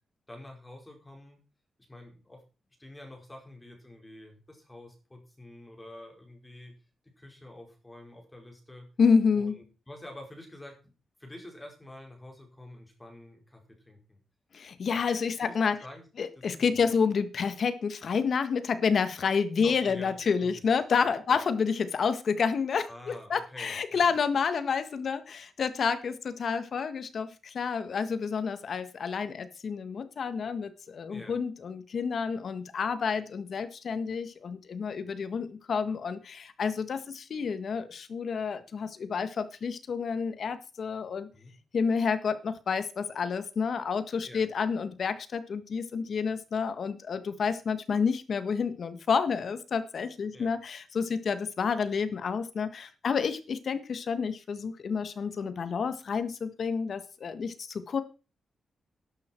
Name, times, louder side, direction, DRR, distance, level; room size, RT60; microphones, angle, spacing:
voice 1, 0.3-1.4 1.9-2.4 2.8-6.7 7.2-8.9 9.3-10.9 11.2-14.2 15.4-15.6 15.8-16.1 16.3-17.0 19.6-20.6 21.0-21.4 22.9-24.1 31.1-31.4 41.3-41.5 44.2-44.4 50.3-50.5, left 1 dB, 10° left, 2 dB, 4.8 m, -48 dB
voice 2, 9.0-9.5 14.5-15.8 16.2-41.3 41.7-58.0, left 5 dB, 55° left, 12 dB, 1.5 m, -29 dB
12.5 x 11.5 x 4.5 m, 0.33 s
wide cardioid pair, 140°, 0 cm